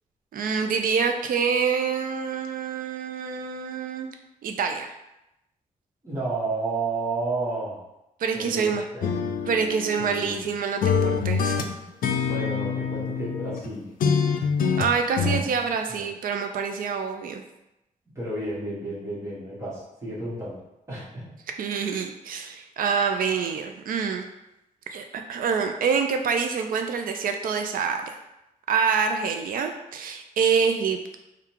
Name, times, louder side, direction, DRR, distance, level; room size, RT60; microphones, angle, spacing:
voice 1, 0.3-4.1 4.4-4.9 8.2-8.8 9.5-11.6 14.8-17.4 21.5-24.2 24.9-28.2 28.7-31.1, right 6 dB, 85° right, 5 dB, 0.4 m, -26 dB
voice 2, 6.0-7.8 8.3-8.7 8.9-9.3 10.0-10.3 12.2-13.9 15.2-15.5 15.9-16.1 18.1-20.6 20.9-21.3, right 2 dB, 20° right, -9 dB, 1.3 m, -31 dB
sound 1, 9.0-10.5 10.8-13.7 14.0-15.4, left 6 dB, 85° left, 0.4 m, -25 dB
3.6 x 2.3 x 4.5 m, 0.90 s
wide cardioid pair, 170°, 14 cm